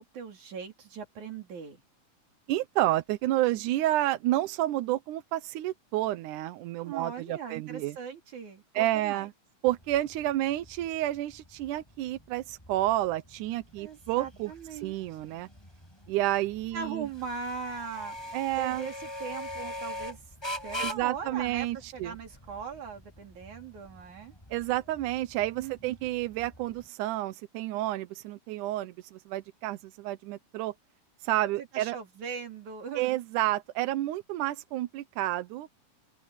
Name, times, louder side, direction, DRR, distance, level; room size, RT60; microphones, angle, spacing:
voice 1, 0.0-1.8 6.8-9.3 13.8-14.9 16.7-20.2 20.6-24.3 25.6-26.0 31.6-33.2, right 6 dB, 60° right, 4.8 m, -40 dB
voice 2, 2.5-7.9 8.8-9.3 9.6-15.5 16.1-17.1 18.3-18.9 20.8-22.1 24.5-30.7 31.2-32.0 33.0-35.7, right 15 dB, 75° right, 2.1 m, -30 dB
sound 1, 9.7-26.9, left 1 dB, 5° left, 7.2 m, -43 dB
open air
omnidirectional pair, 3.9 m